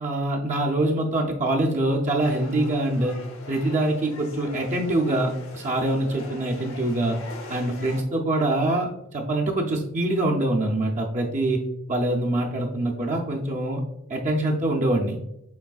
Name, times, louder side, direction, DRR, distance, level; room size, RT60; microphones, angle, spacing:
voice 1, 0.0-3.1 3.5-7.2 7.5-11.6 11.9-13.8 14.1-15.2, right 1 dB, 35° right, -1 dB, 0.5 m, -24 dB
sound 1, 2.2-8.0, left 2 dB, 65° left, 0.9 m, -42 dB
7.0 x 3.1 x 2.3 m, 0.84 s
head